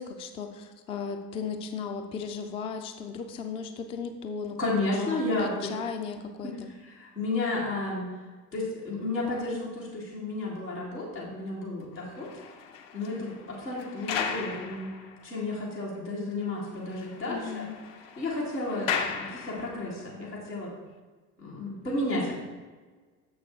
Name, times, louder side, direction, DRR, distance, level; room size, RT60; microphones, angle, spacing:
voice 1, 0.0-4.6 4.9-6.5 17.3-17.8, left 6 dB, 15° left, 6 dB, 0.3 m, -36 dB
voice 2, 4.6-5.7 6.4-8.2 8.5-12.3 12.9-14.9 15.2-17.7 18.2-20.7 21.4-22.4, left 2 dB, 85° left, -6 dB, 2.1 m, -32 dB
sound 1, 11.9-15.6 15.9-16.0 16.4-16.5 16.8-20.0 20.7-20.9, left 6 dB, 55° left, 0.8 m, -37 dB
7.1 x 6.1 x 3.5 m, 1.4 s
figure-of-eight pair, 65°, 48 cm